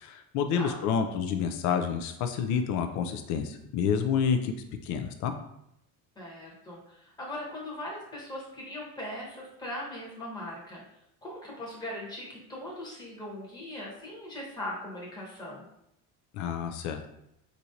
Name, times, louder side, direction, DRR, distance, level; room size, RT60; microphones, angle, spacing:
voice 1, 0.0-4.5 4.8-5.3 16.3-17.1, left 7 dB, 60° left, 6 dB, 0.5 m, -29 dB
voice 2, 6.2-10.8 11.2-15.6, left 1 dB, 15° left, -4 dB, 1.1 m, -39 dB
4.4 x 2.6 x 2.7 m, 0.80 s
cardioid pair, 130°, 32 cm